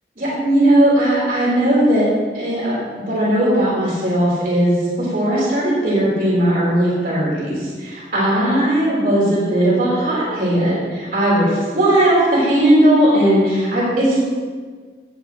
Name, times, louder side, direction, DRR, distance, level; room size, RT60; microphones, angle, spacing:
voice 1, 0.2-2.1 2.3-14.2, right 1 dB, 50° right, -7 dB, 3.6 m, -17 dB
17.0 x 8.3 x 3.0 m, 1.6 s
head